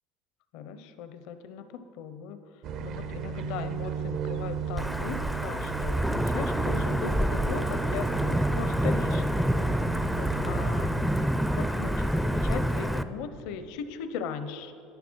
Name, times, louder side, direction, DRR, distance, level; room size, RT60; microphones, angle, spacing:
voice 1, 0.5-2.4 2.8-9.5 10.2-11.0 11.5-14.7, left 7 dB, 70° left, 10 dB, 0.7 m, -38 dB
sound 1, 2.6-11.3, right 7 dB, 55° right, 0.6 m, -35 dB
Wind / Thunder / Rain, 4.8-13.0, equal, ahead, 0.4 m, -27 dB
12.0 x 9.4 x 4.6 m, 2.7 s
supercardioid pair, 125°, 0 cm